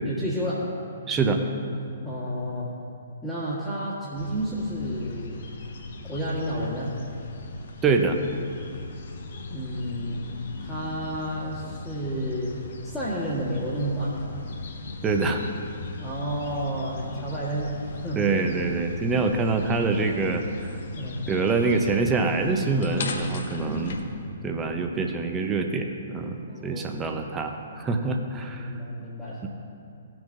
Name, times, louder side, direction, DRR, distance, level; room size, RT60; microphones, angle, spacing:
voice 1, 0.0-1.1 2.0-2.7 3.2-5.4 6.0-7.0 9.5-10.2 10.6-12.6 12.8-14.2 16.0-18.3 20.8-21.3 23.5-24.3 26.5-27.2 28.5-29.5, equal, 5° left, -12 dB, 1.5 m, -31 dB
voice 2, 1.1-1.4 7.8-8.2 15.0-15.4 18.2-20.4 21.3-24.0 24.4-28.7, right 4 dB, 15° right, 4 dB, 0.7 m, -25 dB
sound 1, 4.1-24.0, left 3 dB, 55° left, 0.8 m, -38 dB
18.0 x 6.0 x 2.6 m, 2.7 s
figure-of-eight pair, 125°, 0 cm